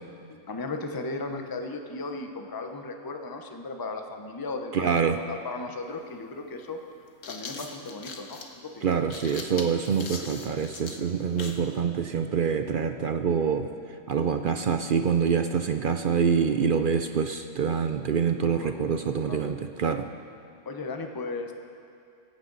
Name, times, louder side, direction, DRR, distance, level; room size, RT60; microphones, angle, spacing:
voice 1, 0.5-6.8 7.3-8.9 18.4-18.9 19.2-19.5 20.6-21.6, left 3 dB, 20° left, 4 dB, 0.7 m, -36 dB
voice 2, 4.7-5.2 8.8-13.7 14.1-20.1, right 6 dB, 60° right, 7 dB, 0.5 m, -26 dB
sound 1, 5.8-5.9 6.9-11.7, left 4 dB, 70° left, 1.5 m, -40 dB
17.0 x 15.5 x 4.0 m, 2.5 s
omnidirectional pair, 1.4 m